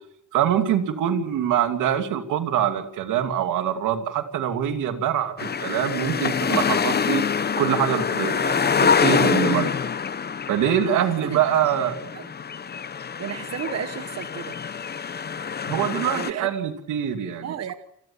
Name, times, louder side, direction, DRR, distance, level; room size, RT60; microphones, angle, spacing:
voice 1, 0.3-7.2 7.6-9.7 10.5-12.0 15.6-17.6, right 9 dB, 85° right, 6 dB, 2.8 m, -24 dB
sound 1, 5.4-16.3, left 6 dB, 35° left, 0.9 m, -25 dB
voice 2, 10.8-11.4 12.1-12.2 13.2-14.5 16.1-16.5 17.4-17.7, right 8 dB, 55° right, 9 dB, 1.5 m, -33 dB
29.0 x 13.5 x 7.3 m, 0.78 s
cardioid pair, 90°, 30 cm